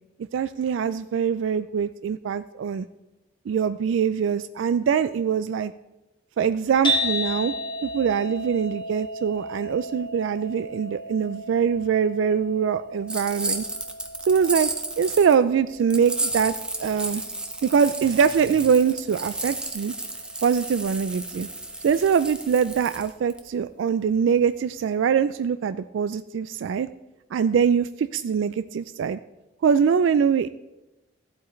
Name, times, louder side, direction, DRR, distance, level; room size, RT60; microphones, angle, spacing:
voice 1, 0.3-2.9 3.5-5.7 6.4-7.5 7.8-13.6 14.3-14.7 15.0-16.5 16.8-17.2 17.6-19.9 20.4-21.5 21.8-26.9 27.3-29.2 29.6-30.5, right 7 dB, 80° right, 13 dB, 0.3 m, -23 dB
sound 1, 6.8-23.1, equal, 25° left, 1.3 m, -35 dB
sound 2, 13.1-15.3 15.9-23.4, right 2 dB, 5° right, 0.7 m, -32 dB
14.5 x 8.0 x 3.2 m, 0.99 s
head